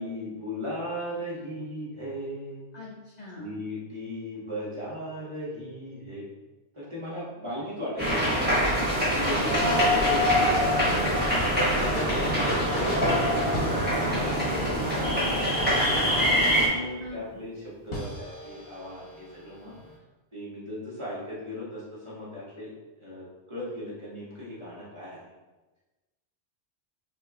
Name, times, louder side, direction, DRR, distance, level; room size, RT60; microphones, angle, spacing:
voice 1, 0.0-2.7 3.4-6.3 6.7-8.6 9.1-10.5 11.5-16.0 16.5-19.7 20.3-22.7 23.0-25.3, equal, 30° right, -8 dB, 1.3 m, -37 dB
voice 2, 2.7-3.6 9.6-10.1 17.0-17.4, left 1 dB, 50° left, -4 dB, 0.7 m, -42 dB
sound 1, 8.0-16.7, equal, 10° right, 1.2 m, -24 dB
sound 2, 9.2-14.0 17.0-17.1 17.9-19.9, left 1 dB, 65° left, 1.3 m, -35 dB
5.6 x 2.9 x 2.5 m, 1.1 s
omnidirectional pair, 1.1 m